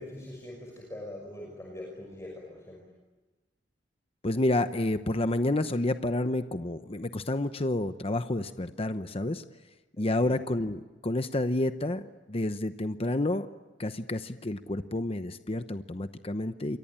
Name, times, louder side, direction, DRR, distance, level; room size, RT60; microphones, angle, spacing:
voice 1, 0.0-2.8 10.0-10.4, left 1 dB, 15° left, -1 dB, 6.0 m, -43 dB
voice 2, 4.2-9.4 10.0-12.0 12.3-13.5 13.8-16.8, left 1 dB, 30° left, 10 dB, 0.9 m, -29 dB
28.5 x 23.5 x 8.8 m, 1.2 s
head